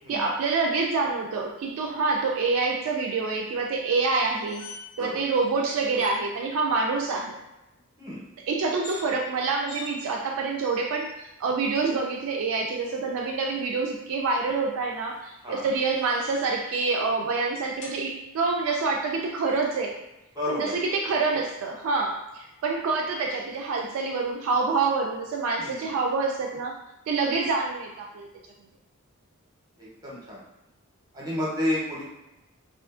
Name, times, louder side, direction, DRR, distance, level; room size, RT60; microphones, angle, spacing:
voice 1, 0.1-4.6 5.0-7.4 8.4-19.9 20.5-26.8 27.1-28.3, right 4 dB, 65° right, 1 dB, 0.3 m, -27 dB
sound 1, 4.2-5.1 5.4-5.5 5.9-6.2 8.7-9.1 9.7-9.9 10.6-11.2 12.2-13.0 14.9-16.5 17.8-18.0, left 3 dB, 75° left, 0.6 m, -45 dB
voice 2, 20.3-20.7 21.1-21.2 25.6-25.8 29.8-30.4 31.1-32.0, left 1 dB, 15° right, -6 dB, 0.7 m, -31 dB
2.4 x 2.4 x 2.4 m, 0.95 s
head